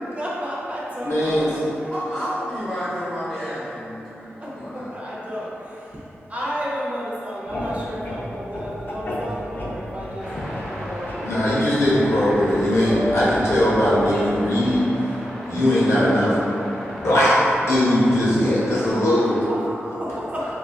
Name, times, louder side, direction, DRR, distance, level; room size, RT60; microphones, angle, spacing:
voice 1, 0.0-1.9 4.4-12.3 19.5-20.5, equal, 30° right, -7 dB, 0.5 m, -32 dB
voice 2, 1.0-1.7 11.2-16.5 16.9-19.5, left 1 dB, 75° left, -8 dB, 0.7 m, -20 dB
voice 3, 1.9-5.0 12.3-12.7, equal, 30° left, -12 dB, 0.9 m, -31 dB
sound 1, 7.5-14.8, left 1 dB, 45° left, 0.4 m, -34 dB
sound 2, 10.2-19.4, equal, 10° right, 1.1 m, -36 dB
Piano, 12.8-16.8 17.2-17.6, equal, 70° right, 0.6 m, -35 dB
3.4 x 2.3 x 2.3 m, 2.9 s
wide cardioid pair, 110°, 5 cm